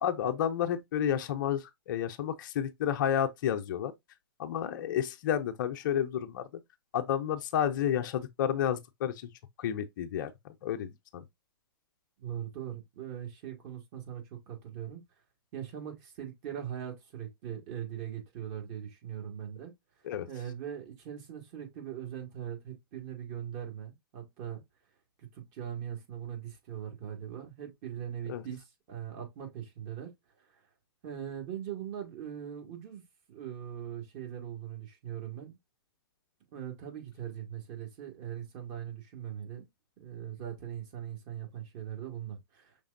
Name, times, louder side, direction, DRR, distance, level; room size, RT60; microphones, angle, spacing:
voice 1, 0.0-3.9 4.4-6.6 6.9-9.3 9.6-11.2 20.0-20.3 28.3-28.4, left 9 dB, 50° left, 0.6 m, -31 dB
voice 2, 12.2-15.0 15.5-19.7 20.3-24.6 25.2-30.1 31.0-33.0 33.3-35.6 36.5-39.7 40.0-42.8, right 9 dB, 40° right, 2.0 m, -40 dB
5.9 x 3.5 x 2.5 m
hypercardioid pair, 120°, 13 cm